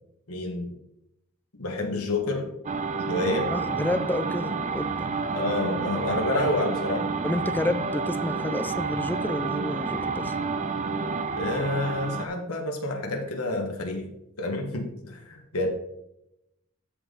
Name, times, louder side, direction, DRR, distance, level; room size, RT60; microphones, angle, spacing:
voice 1, 0.3-0.7 1.6-2.5 3.1-3.5 5.3-7.1 11.3-14.1 14.4-15.7, left 2 dB, 85° left, 2 dB, 1.6 m, -28 dB
sound 1, 2.7-12.3, right 4 dB, 35° right, 0.6 m, -29 dB
voice 2, 3.5-5.1 7.2-10.3, left 1 dB, 10° left, 10 dB, 0.4 m, -30 dB
13.5 x 4.7 x 3.9 m, 0.83 s
head